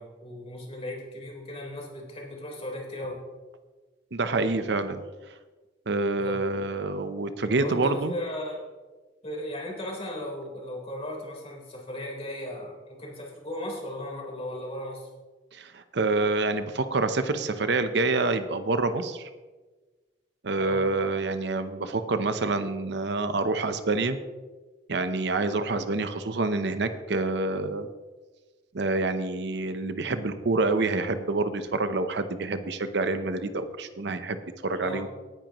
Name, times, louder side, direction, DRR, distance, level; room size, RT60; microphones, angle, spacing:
voice 1, 0.0-3.2 6.2-6.4 7.6-8.6 9.2-15.1 20.5-20.9 34.8-35.1, left 1 dB, 35° left, -2 dB, 3.9 m, -36 dB
voice 2, 4.1-5.0 5.9-8.1 15.5-19.3 20.4-24.2 24.9-27.9 28.7-35.1, right 3 dB, 70° right, 10 dB, 0.8 m, -27 dB
18.5 x 10.0 x 3.0 m, 1.3 s
head